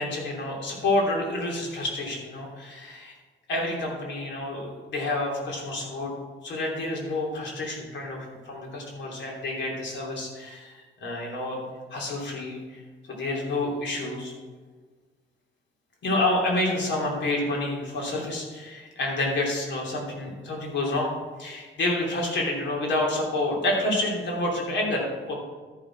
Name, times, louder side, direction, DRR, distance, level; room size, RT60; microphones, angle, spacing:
voice 1, 0.0-3.1 3.5-6.1 6.4-10.7 11.0-11.6 11.9-12.8 13.1-14.3 16.0-21.1 21.4-25.3, left 2 dB, 65° left, -2 dB, 3.0 m, -28 dB
12.5 x 5.9 x 4.5 m, 1.4 s
cardioid pair, 90°, 20 cm